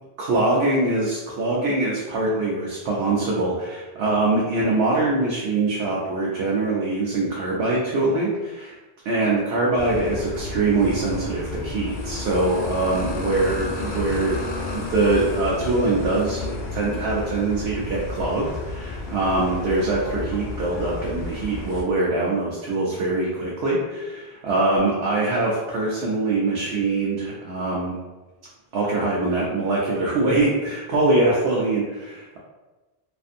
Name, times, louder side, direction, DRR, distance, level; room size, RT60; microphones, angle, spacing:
voice 1, 0.2-8.7 9.1-14.4 14.7-28.0 28.7-32.4, right 2 dB, 75° right, -4 dB, 0.8 m, -23 dB
sound 1, 9.8-21.8, left 3 dB, 60° left, 0.6 m, -32 dB
2.5 x 2.5 x 2.5 m, 1.2 s
omnidirectional pair, 1.1 m